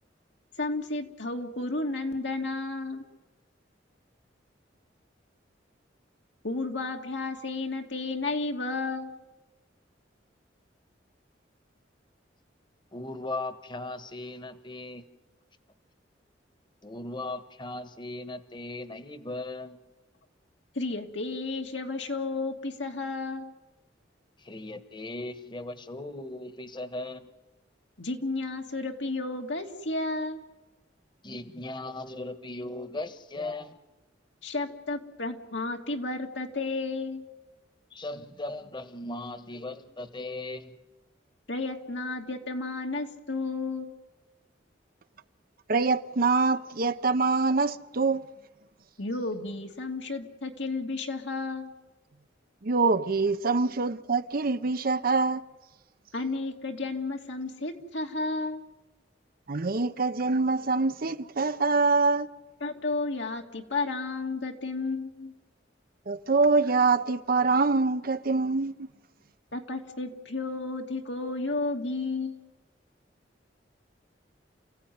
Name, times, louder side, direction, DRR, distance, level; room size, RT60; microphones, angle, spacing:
voice 1, 0.6-3.0 6.4-9.2 20.7-23.5 28.0-30.4 34.4-37.3 41.5-43.9 49.0-51.7 56.1-58.6 62.6-65.3 69.5-72.5, left 3 dB, 75° left, 2.5 m, -32 dB
voice 2, 12.9-15.0 16.8-19.8 24.4-27.3 31.2-33.8 37.9-40.8, left 2 dB, 25° left, 1.4 m, -38 dB
voice 3, 45.7-48.2 52.6-55.4 59.5-62.3 66.1-68.9, right 4 dB, 55° right, 0.8 m, -25 dB
29.0 x 16.0 x 9.4 m
head